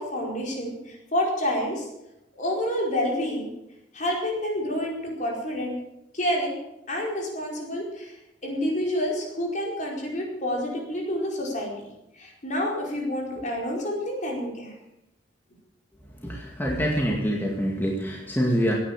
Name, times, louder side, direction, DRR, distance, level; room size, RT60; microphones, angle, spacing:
voice 1, 0.0-1.9 2.4-3.5 3.9-5.8 6.1-6.6 6.9-8.1 8.4-11.7 12.2-14.7, equal, 45° left, -1 dB, 4.8 m, -28 dB
voice 2, 16.2-18.7, equal, 10° left, -2 dB, 2.1 m, -25 dB
17.5 x 9.8 x 7.4 m, 0.87 s
head